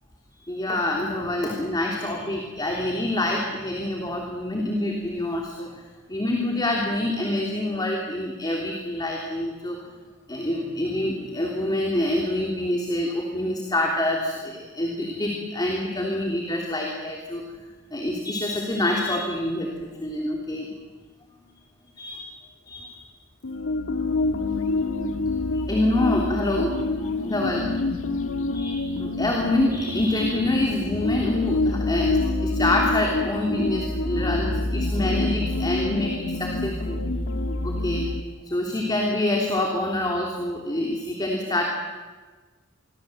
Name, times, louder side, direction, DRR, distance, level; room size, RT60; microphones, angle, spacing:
voice 1, 0.5-5.7 6.1-9.8 10.3-17.4 17.9-20.7 22.0-22.3 22.7-22.9 25.5-26.7 27.0-27.7 28.5-37.0 37.6-38.1 38.4-41.6, left 1 dB, 20° left, 0 dB, 3.2 m, -26 dB
sound 1, 23.4-38.2, left 2 dB, 80° left, 1.7 m, -27 dB
28.0 x 22.5 x 7.9 m, 1.3 s
head